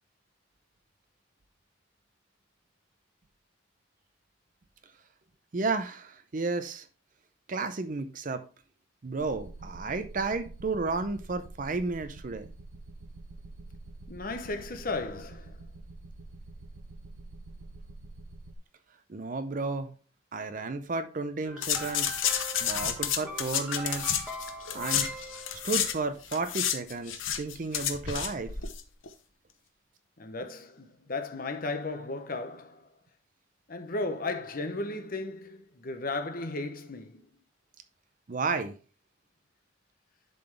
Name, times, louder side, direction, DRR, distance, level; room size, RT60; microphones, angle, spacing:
voice 1, 5.5-6.9 7.5-8.5 9.0-12.5 19.1-19.9 20.3-22.2 22.6-24.2 24.7-25.1 25.6-28.5 38.3-38.7, right 3 dB, 40° right, 0.5 m, -32 dB
sound 1, 9.2-18.6, right 2 dB, 85° right, 0.6 m, -46 dB
voice 2, 14.1-15.6 30.2-32.9 33.7-37.2, left 2 dB, 45° left, 0.9 m, -35 dB
sound 2, 21.4-26.1, right 1 dB, 5° right, 1.2 m, -42 dB
sound 3, 21.6-26.0 26.2-28.8 29.1-29.2, left 9 dB, 85° left, 0.8 m, -30 dB
10.5 x 3.9 x 3.3 m
head